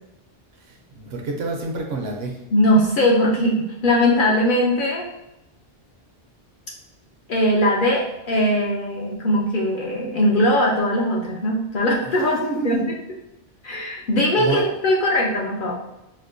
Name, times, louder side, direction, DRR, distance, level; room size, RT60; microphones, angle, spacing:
voice 1, 0.6-2.4 12.2-12.9 14.4-14.6, right 3 dB, 65° right, 1 dB, 0.8 m, -28 dB
voice 2, 2.5-5.1 7.3-12.4 12.6-12.8 13.6-15.7, left 1 dB, 60° left, -2 dB, 0.6 m, -20 dB
4.2 x 2.1 x 2.5 m, 0.93 s
omnidirectional pair, 1.2 m